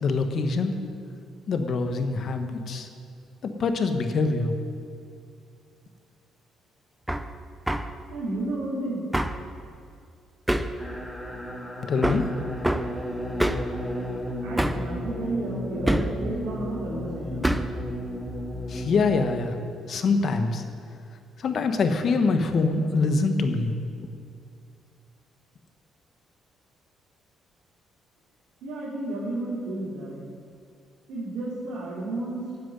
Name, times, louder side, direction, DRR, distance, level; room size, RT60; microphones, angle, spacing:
voice 1, 0.0-0.7 1.5-2.9 3.4-4.5 11.8-12.3 18.7-19.5 19.9-20.6 21.4-23.7, left 4 dB, 55° left, 7 dB, 1.3 m, -24 dB
Hammer, 7.1-7.3 7.7-7.9 9.1-9.4 10.5-10.8 12.0-12.3 12.6-12.9 13.4-13.7 14.6-14.9 15.9-16.2 17.4-17.8, right 1 dB, 5° right, 0.7 m, -25 dB
voice 2, 8.1-9.1 14.4-17.5 28.6-30.2 31.1-32.4, right 2 dB, 80° right, -10 dB, 3.4 m, -32 dB
sound 1, 10.8-19.2, equal, 10° left, 2.4 m, -34 dB
11.0 x 7.7 x 9.8 m, 2.4 s
cardioid pair, 80°, 0 cm